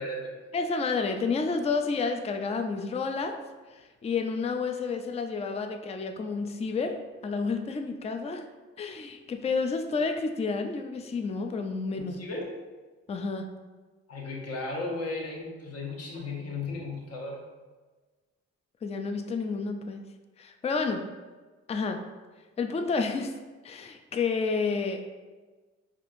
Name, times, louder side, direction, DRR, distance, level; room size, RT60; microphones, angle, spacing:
voice 1, 0.0-0.4 12.0-12.5 14.1-17.4, left 2 dB, 55° left, -1 dB, 0.9 m, -35 dB
voice 2, 0.5-3.3 3.7-8.5 8.8-12.2 13.1-13.5 18.8-20.0 20.4-21.0 21.7-22.0 22.6-23.3 23.6-25.1, left 4 dB, 20° left, 5 dB, 0.3 m, -30 dB
4.1 x 2.5 x 2.5 m, 1.3 s
supercardioid pair, 50°, 29 cm